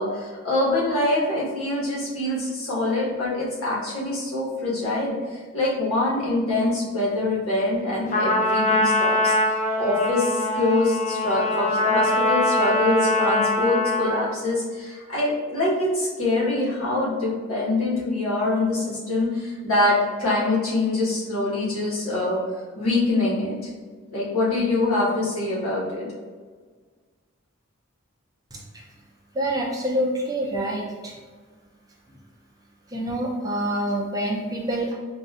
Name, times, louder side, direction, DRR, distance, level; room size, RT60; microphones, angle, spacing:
voice 1, 0.0-22.4 22.8-23.6 24.1-26.1, left 2 dB, 75° left, -7 dB, 1.4 m, -24 dB
Trumpet, 8.1-14.3, left 1 dB, 35° left, 0.5 m, -23 dB
voice 2, 29.3-31.1 32.9-34.9, right 1 dB, 15° right, -3 dB, 0.5 m, -26 dB
5.1 x 2.5 x 2.4 m, 1.5 s
head